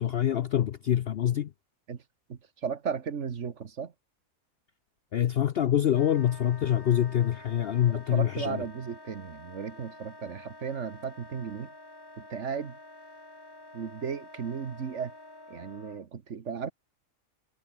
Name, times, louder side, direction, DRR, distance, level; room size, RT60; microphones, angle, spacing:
voice 1, 0.0-1.5 5.1-8.6, left 10 dB, 60° left, 0.6 m, -25 dB
voice 2, 2.3-3.9 7.9-11.7 12.2-12.8 13.7-15.1 15.5-16.7, right 6 dB, 55° right, 1.6 m, -35 dB
Wind instrument woodwind instrument, 5.9-16.0, left 2 dB, 80° left, 8.0 m, -49 dB
omnidirectional pair, 1.5 m